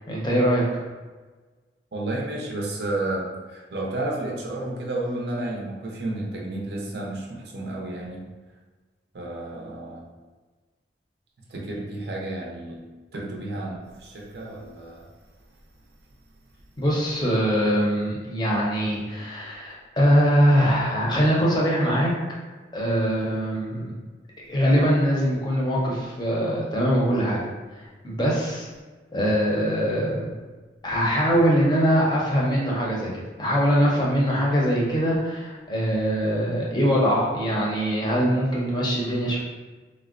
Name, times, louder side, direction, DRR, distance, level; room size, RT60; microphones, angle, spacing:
voice 1, 0.1-0.7 16.8-22.1 22.7-23.9 24.5-27.4 27.8-28.7 29.1-30.3 30.8-33.1 33.4-39.4, equal, 25° left, -4 dB, 0.5 m, -22 dB
voice 2, 1.9-8.2 9.1-10.1 11.5-12.8 13.1-15.1, right 2 dB, 65° right, -2 dB, 0.6 m, -31 dB
3.5 x 2.1 x 2.4 m, 1.3 s
head